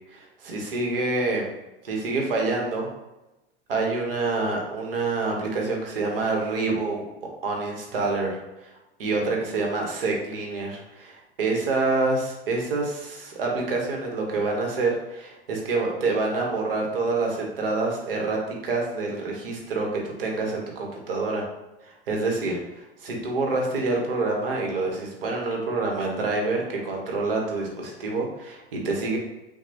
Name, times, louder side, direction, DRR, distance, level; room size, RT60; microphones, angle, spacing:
voice 1, 0.1-1.5 1.8-2.9 3.7-7.0 7.4-8.7 9.0-21.4 21.8-29.2, right 3 dB, 65° right, 0 dB, 1.1 m, -27 dB
5.9 x 2.3 x 2.8 m, 1.0 s
figure-of-eight pair, 80°, 30 cm